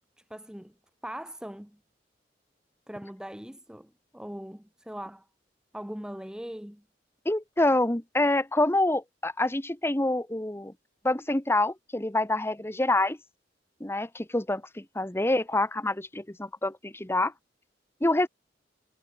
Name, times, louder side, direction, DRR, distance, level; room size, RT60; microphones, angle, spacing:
voice 1, 0.3-0.7 1.0-1.8 2.9-5.3 5.7-6.8, equal, 5° right, 0.8 m, -40 dB
voice 2, 7.2-10.7 11.0-13.2 13.8-17.3 18.0-18.3, left 2 dB, 15° left, 1.2 m, -26 dB
head